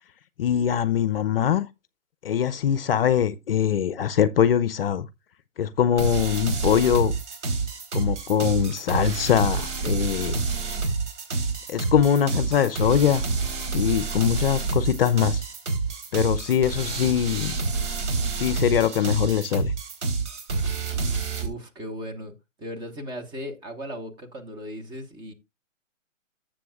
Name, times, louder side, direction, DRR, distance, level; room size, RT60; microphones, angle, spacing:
voice 1, 0.4-1.7 2.2-5.1 5.6-7.1 7.9-10.4 11.7-13.2 13.7-15.4 16.1-17.5 18.3-19.7, left 9 dB, 50° left, 0.7 m, -22 dB
sound 1, 6.0-21.5, right 4 dB, 65° right, 3.6 m, -28 dB
voice 2, 21.0-22.3 22.6-25.3, equal, 10° right, 1.0 m, -37 dB
13.0 x 7.8 x 2.3 m
hypercardioid pair, 145°, 39 cm